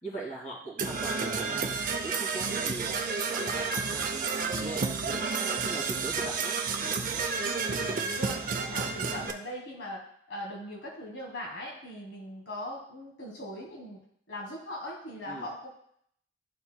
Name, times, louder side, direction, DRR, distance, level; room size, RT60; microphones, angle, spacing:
voice 1, 0.0-6.6 8.8-9.2 15.3-15.5, right 2 dB, 40° left, -5 dB, 2.3 m, -41 dB
Percussion / Brass instrument, 0.8-9.3, right 4 dB, 45° right, 0.6 m, -31 dB
voice 2, 7.3-14.0 14.3-15.7, equal, 90° left, -1 dB, 1.5 m, -40 dB
12.0 x 4.4 x 2.2 m, 0.67 s
head